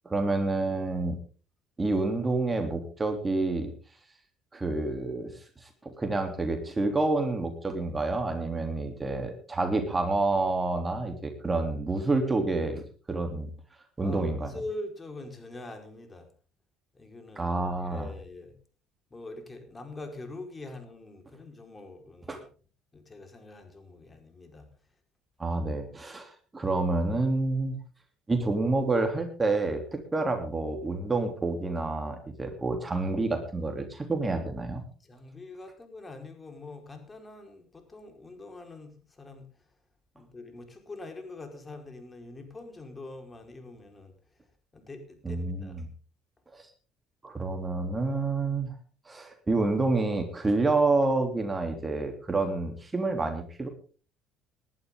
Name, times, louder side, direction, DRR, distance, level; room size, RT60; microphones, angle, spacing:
voice 1, 0.0-1.2 1.8-3.7 4.5-5.3 5.8-12.8 13.1-13.5 14.0-14.5 17.4-18.1 22.3-22.4 25.4-27.7 28.3-34.8 45.2-45.9 46.5-46.6 47.2-48.7 49.1-53.7, right 3 dB, 20° right, 5 dB, 3.3 m, -28 dB
voice 2, 14.0-16.3 16.9-17.5 17.9-18.5 19.1-22.4 22.9-24.7 35.1-39.5 40.1-44.1 44.7-45.8, left 2 dB, 25° left, 5 dB, 4.8 m, -44 dB
19.5 x 11.5 x 3.8 m, 0.39 s
supercardioid pair, 75°, 0 cm